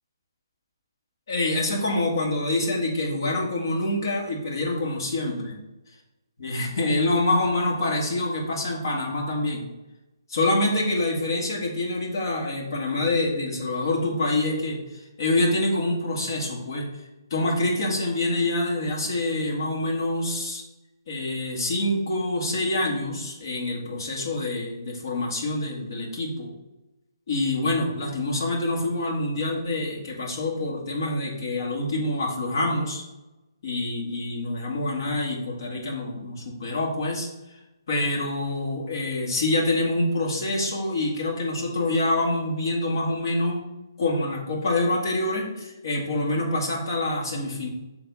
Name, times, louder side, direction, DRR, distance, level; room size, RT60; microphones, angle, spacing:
voice 1, 1.3-5.6 6.4-9.6 10.3-16.9 17.3-20.6 21.1-26.5 27.3-33.0 33.6-37.3 37.9-43.6 44.0-47.7, left 2 dB, 55° left, -2 dB, 2.2 m, -26 dB
7.1 x 3.5 x 5.4 m, 1.0 s
hypercardioid pair, 165°, 2 cm